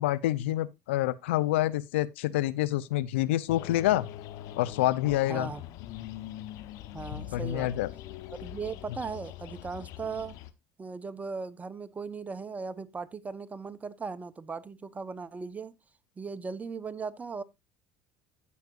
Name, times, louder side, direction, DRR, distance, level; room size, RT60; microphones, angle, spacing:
voice 1, 0.0-4.1 4.6-5.5 7.1-7.9, left 15 dB, 85° left, 0.6 m, -27 dB
sound 1, 3.5-10.5, left 13 dB, 65° left, 1.0 m, -42 dB
voice 2, 5.3-5.6 6.9-7.7 8.3-10.4 10.8-15.7 16.2-17.4, right 5 dB, 25° right, 0.9 m, -38 dB
16.5 x 6.0 x 2.5 m
hypercardioid pair, 75°, 6 cm